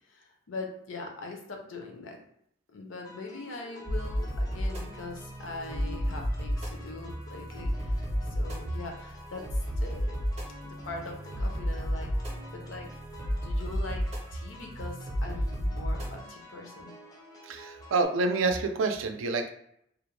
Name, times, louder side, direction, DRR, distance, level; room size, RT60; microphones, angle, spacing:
voice 1, 0.1-2.2 2.7-10.2 10.6-12.1 12.5-12.9 13.4-14.0 14.3-16.9, left 3 dB, 80° left, 2 dB, 0.6 m, -42 dB
sound 1, 3.0-18.0, left 1 dB, 20° left, 0.3 m, -50 dB
sound 2, 3.9-16.2, equal, 30° right, 0.5 m, -33 dB
voice 2, 17.4-19.5, right 3 dB, 90° right, 6 dB, 0.4 m, -28 dB
2.4 x 2.1 x 3.0 m, 0.72 s
head